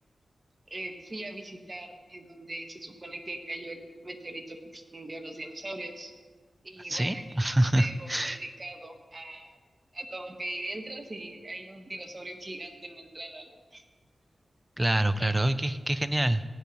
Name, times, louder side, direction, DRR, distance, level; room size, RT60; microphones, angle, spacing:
voice 1, 0.7-6.1 6.6-9.5 9.9-13.8 15.2-15.3, right 1 dB, 30° right, 4 dB, 1.1 m, -40 dB
voice 2, 6.9-8.4 14.8-16.4, right 1 dB, 15° right, 12 dB, 0.4 m, -26 dB
15.5 x 9.6 x 2.8 m, 1.4 s
wide cardioid pair, 115°, 0 cm